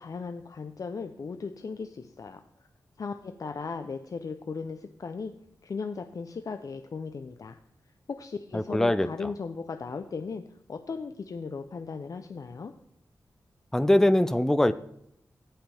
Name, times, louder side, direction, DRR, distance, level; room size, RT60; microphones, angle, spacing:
voice 1, 0.0-2.4 3.0-5.3 5.6-7.6 8.1-10.4 10.7-12.7, left 5 dB, 60° left, 7 dB, 0.7 m, -37 dB
voice 2, 8.5-9.1 13.7-14.7, left 1 dB, 5° left, 13 dB, 0.5 m, -22 dB
17.0 x 5.7 x 3.5 m, 0.73 s
wide cardioid pair, 75°, 7 cm